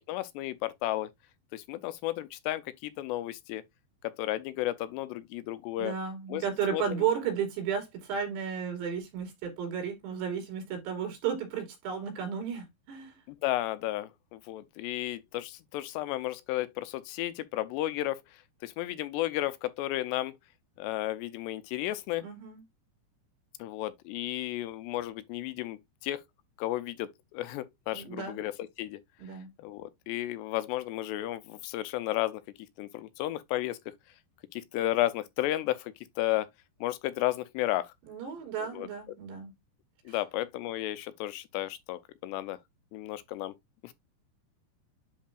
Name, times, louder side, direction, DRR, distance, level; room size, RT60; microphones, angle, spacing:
voice 1, 0.1-1.1 1.5-3.6 4.0-5.9 6.3-6.4 6.7-7.0 13.3-18.2 18.6-20.3 20.8-22.3 23.6-26.2 26.6-28.5 28.8-29.0 29.6-32.4 32.8-33.8 34.5-36.5 36.8-37.9 38.6-38.9 40.1-42.6 42.9-43.5 43.8-43.9, left 15 dB, 80° left, 2.8 m, -33 dB
voice 2, 5.8-13.2 22.2-22.6 27.9-28.4 29.2-29.5 38.1-39.5 40.1-40.2, right 7 dB, 75° right, 4.9 m, -33 dB
10.5 x 4.4 x 2.5 m
omnidirectional pair, 5.0 m